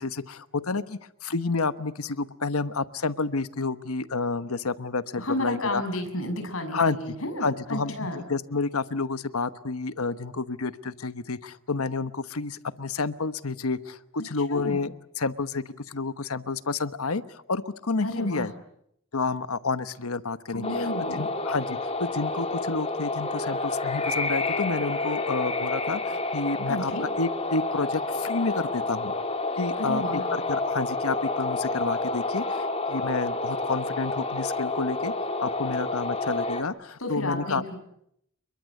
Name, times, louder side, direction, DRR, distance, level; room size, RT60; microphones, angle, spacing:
voice 1, 0.0-5.8 6.7-7.1 7.4-18.5 19.1-29.1 29.6-35.1 35.4-37.6, left 3 dB, 90° left, 13 dB, 1.2 m, -30 dB
voice 2, 5.2-8.2 14.5-14.8 18.0-18.5 20.5-21.3 26.7-27.0 29.8-30.2 37.0-37.8, left 1 dB, 70° left, 6 dB, 6.5 m, -32 dB
sound 1, 20.6-36.6, left 3 dB, 30° left, 2.8 m, -29 dB
28.5 x 22.5 x 8.3 m, 0.74 s
head